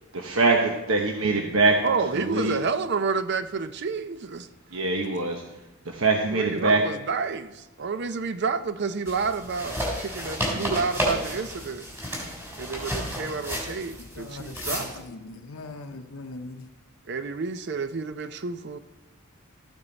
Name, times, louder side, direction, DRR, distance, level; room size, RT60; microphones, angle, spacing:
voice 1, 0.1-1.8 2.1-2.5 4.7-5.4 5.9-6.8, right 3 dB, 75° right, 1.0 m, -23 dB
voice 2, 1.8-4.5 6.3-11.9 12.6-15.1 17.1-18.8, right 4 dB, 55° right, 0.5 m, -29 dB
sound 1, 9.1-15.0, equal, 10° right, 3.2 m, -32 dB
voice 3, 14.2-14.8 15.1-16.7, left 3 dB, 75° left, 0.7 m, -40 dB
13.5 x 8.9 x 4.0 m
head